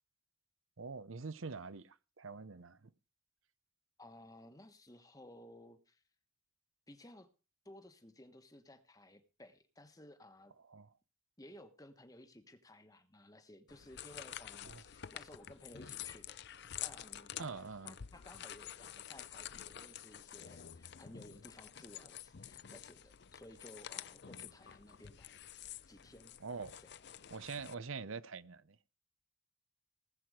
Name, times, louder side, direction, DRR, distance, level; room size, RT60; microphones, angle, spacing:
voice 1, 0.8-2.9 10.7-10.9 14.6-14.8 17.4-18.0 26.4-26.8 27.3-28.9, right 4 dB, 75° right, 0.8 m, -45 dB
voice 2, 4.0-6.0 6.9-7.3 7.6-10.5 11.4-25.4 25.9-26.4 26.8-26.9, left 1 dB, 15° left, 1.2 m, -57 dB
sound 1, 13.7-27.7, left 10 dB, 55° left, 0.5 m, -49 dB
19.0 x 7.9 x 4.9 m
head